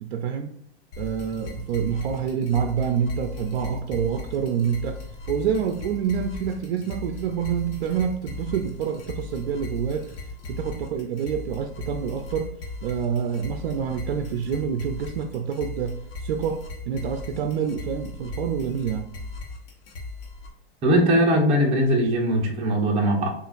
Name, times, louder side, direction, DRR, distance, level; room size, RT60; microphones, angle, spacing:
voice 1, 0.0-0.6 1.0-10.1 10.5-12.6 12.8-19.1, right 7 dB, 60° right, 6 dB, 0.5 m, -27 dB
sound 1, 0.9-20.5, left 3 dB, 60° left, 1.1 m, -38 dB
voice 2, 20.8-23.3, equal, 20° right, -2 dB, 1.0 m, -20 dB
6.7 x 2.5 x 2.5 m, 0.76 s
supercardioid pair, 150°, 32 cm